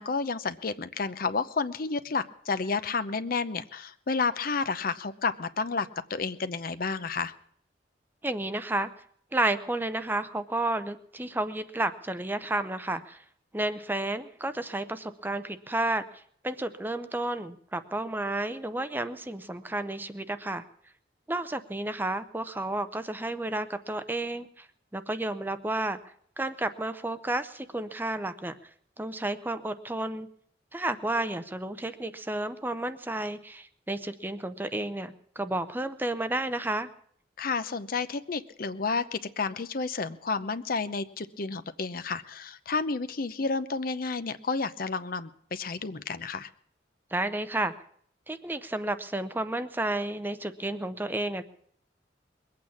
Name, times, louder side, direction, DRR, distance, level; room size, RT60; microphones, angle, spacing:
voice 1, 0.0-7.3 37.4-46.5, left 4 dB, 50° left, 12 dB, 0.7 m, -31 dB
voice 2, 8.2-8.9 9.3-13.2 13.5-16.0 16.4-20.6 21.3-24.7 24.9-26.0 26.4-28.6 29.0-30.3 30.7-36.9 47.1-47.7 48.3-51.4, right 2 dB, 10° right, 11 dB, 0.6 m, -31 dB
21.5 x 8.6 x 7.2 m, 0.63 s
head